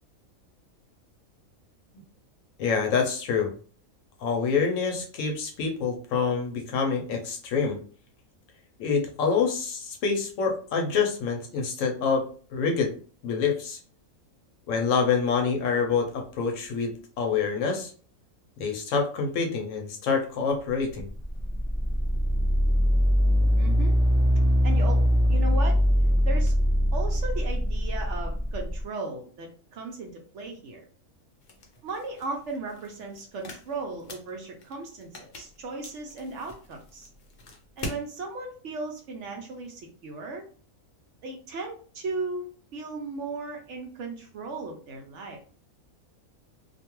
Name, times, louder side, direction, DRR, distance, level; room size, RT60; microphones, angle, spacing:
voice 1, 2.6-3.5 4.2-7.8 8.8-12.2 12.5-12.9 13.2-13.8 14.7-17.9 18.6-21.1, left 5 dB, 70° left, 3 dB, 0.9 m, -26 dB
sound 1, 21.0-28.8, equal, 15° right, 0.4 m, -22 dB
voice 2, 23.6-23.9 24.6-25.0 25.3-25.8 26.3-26.5 26.9-30.9 31.8-37.1 37.8-40.4 41.2-45.4, right 3 dB, 65° right, 2 dB, 0.8 m, -36 dB
sound 2, 31.4-38.1, left 2 dB, 55° left, 0.5 m, -44 dB
2.5 x 2.3 x 2.9 m, 0.42 s
omnidirectional pair, 1.5 m